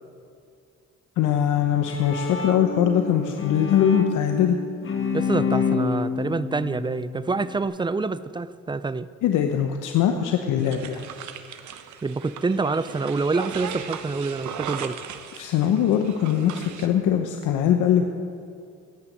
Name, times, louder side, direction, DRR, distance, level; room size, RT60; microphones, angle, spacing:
voice 1, 1.2-4.6 5.8-5.9 9.2-11.0 15.3-18.0, left 9 dB, 85° left, 5 dB, 0.8 m, -22 dB
Bowed string instrument, 1.6-7.6, left 6 dB, 45° left, 1.3 m, -29 dB
voice 2, 5.1-9.1 12.0-15.0, right 3 dB, 15° right, 15 dB, 0.4 m, -26 dB
sound 1, 10.6-16.9, right 8 dB, 70° right, 0.9 m, -37 dB
17.0 x 6.0 x 7.8 m, 2.4 s
cardioid pair, 90°, 30 cm